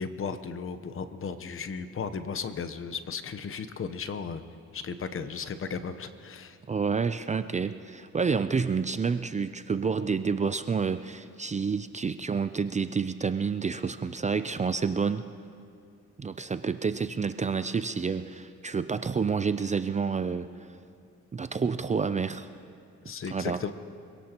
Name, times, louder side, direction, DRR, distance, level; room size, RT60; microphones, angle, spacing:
voice 1, 0.0-4.4 4.7-6.6 23.0-23.7, left 6 dB, 45° left, 11 dB, 1.0 m, -35 dB
voice 2, 6.7-15.2 16.2-20.5 21.3-22.5 23.3-23.6, right 5 dB, 25° right, 11 dB, 0.5 m, -29 dB
25.0 x 17.5 x 3.0 m, 2.4 s
cardioid pair, 90°, 30 cm